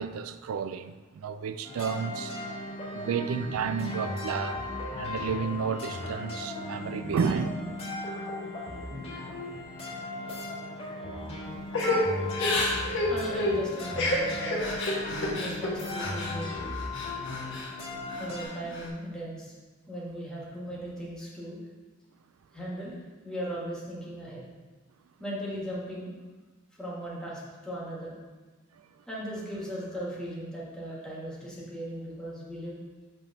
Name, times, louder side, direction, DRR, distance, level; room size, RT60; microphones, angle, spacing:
voice 1, 0.0-2.3 2.9-4.7 4.9-7.7 11.8-12.2 15.1-15.5, right 6 dB, 75° right, 0.4 m, -32 dB
sound 1, 1.6-18.4, left 2 dB, 30° left, 1.6 m, -37 dB
Crying sobbing / Breathing, 11.7-16.3 16.7-17.7 18.1-18.8, left 2 dB, 65° left, 1.2 m, -29 dB
voice 2, 13.1-14.6 15.4-16.5 18.2-19.5 19.9-21.6 22.5-24.4 25.2-26.1 26.8-28.1 29.1-32.8, equal, 5° left, 1.6 m, -37 dB
6.1 x 3.4 x 5.7 m
head